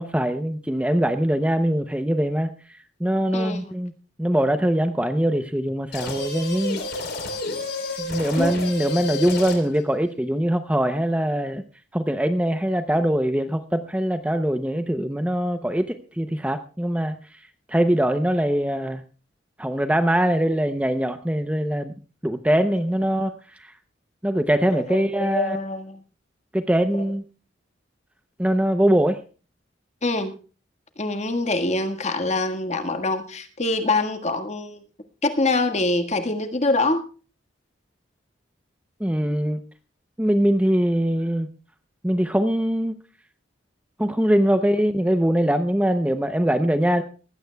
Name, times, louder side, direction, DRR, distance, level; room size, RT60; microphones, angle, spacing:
voice 1, 0.0-3.9 4.2-6.8 8.0-11.6 11.9-19.0 19.6-21.9 22.2-23.7 24.2-25.6 26.5-27.2 28.4-29.2 39.0-39.6 40.2-41.5 42.0-42.9 44.0-47.0, equal, 5° right, 8 dB, 0.6 m, -22 dB
sound 1, 5.9-9.8, left 2 dB, 55° left, 3.7 m, -31 dB
voice 2, 24.7-26.0 30.0-30.3 31.0-34.8 35.2-37.0, left 2 dB, 35° left, 7 dB, 1.6 m, -24 dB
19.5 x 16.0 x 2.3 m, 0.36 s
head